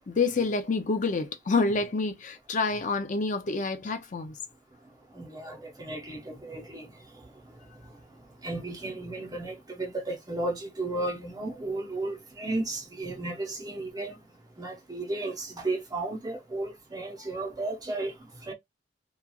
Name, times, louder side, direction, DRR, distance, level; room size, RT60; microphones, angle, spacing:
voice 1, 0.1-4.4, left 3 dB, 45° left, 0.4 m, -28 dB
voice 2, 5.1-14.3 14.6-18.5, right 2 dB, 20° right, 0.7 m, -34 dB
3.0 x 2.3 x 2.3 m
head